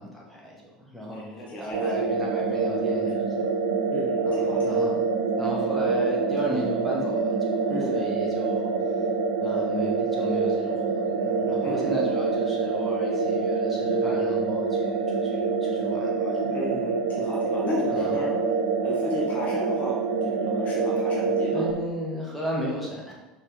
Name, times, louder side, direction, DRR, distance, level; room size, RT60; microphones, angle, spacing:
voice 1, 0.0-3.5 4.2-5.0 5.4-8.7 9.4-16.5 17.9-18.2 21.5-23.1, equal, ahead, -4 dB, 2.0 m, -35 dB
voice 2, 1.1-1.9 3.9-4.7 7.7-8.1 11.6-12.0 16.5-18.3 18.8-19.9 20.2-21.6, left 2 dB, 35° left, -2 dB, 1.2 m, -34 dB
sound 1, 1.7-21.7, right 4 dB, 65° right, 0.7 m, -26 dB
5.3 x 4.5 x 5.0 m, 1.1 s
figure-of-eight pair, 70°, 4 cm